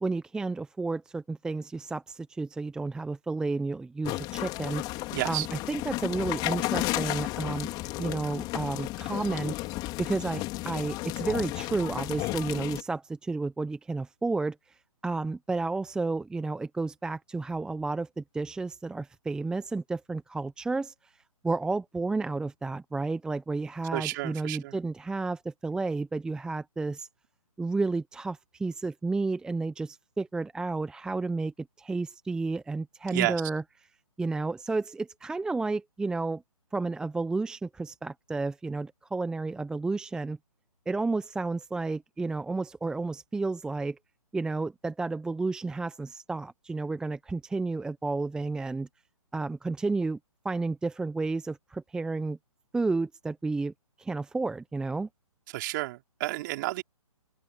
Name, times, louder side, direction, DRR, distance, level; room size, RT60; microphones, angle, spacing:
voice 1, 0.0-4.8 5.2-7.7 8.0-9.6 10.0-21.1 21.4-27.1 27.6-33.6 34.2-36.4 36.7-40.4 40.9-44.0 44.3-48.9 49.3-50.2 50.4-52.4 52.7-53.7 54.0-55.1, right 3 dB, 5° right, 0.9 m, -31 dB
sound 1, 4.0-12.8, left 20 dB, 20° left, 4.9 m, -33 dB
voice 2, 5.1-5.5 23.9-24.7 33.1-33.4 55.5-56.8, right 19 dB, 35° right, 3.8 m, -31 dB
figure-of-eight pair, 135°, 19 cm